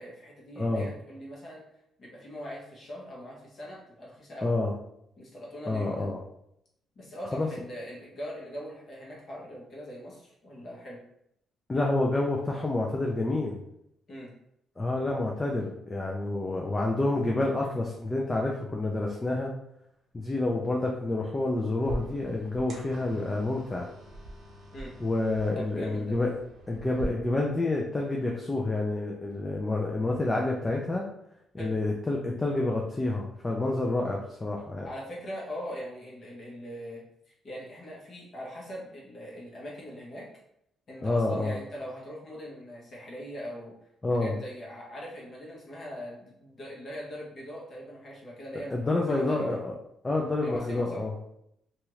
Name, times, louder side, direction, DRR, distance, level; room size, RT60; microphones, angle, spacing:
voice 1, 0.0-1.6 2.0-4.5 5.2-6.1 6.9-11.0 14.1-14.3 24.7-24.9 25.5-26.2 31.6-31.7 34.8-40.3 40.9-43.7 44.1-49.6 50.4-51.0, equal, 50° left, -4 dB, 1.1 m, -41 dB
voice 2, 0.6-0.9 4.4-4.7 5.7-6.2 7.3-7.5 11.7-13.6 14.8-19.5 20.1-23.9 25.0-26.3 26.7-31.1 31.5-34.9 41.0-41.6 44.0-44.4 48.7-49.7 50.0-51.1, left 2 dB, 20° left, -1 dB, 0.4 m, -28 dB
sound 1, 21.8-27.1, right 1 dB, 65° right, 0.8 m, -43 dB
2.7 x 2.4 x 3.1 m, 0.77 s
cardioid pair, 90°, 0 cm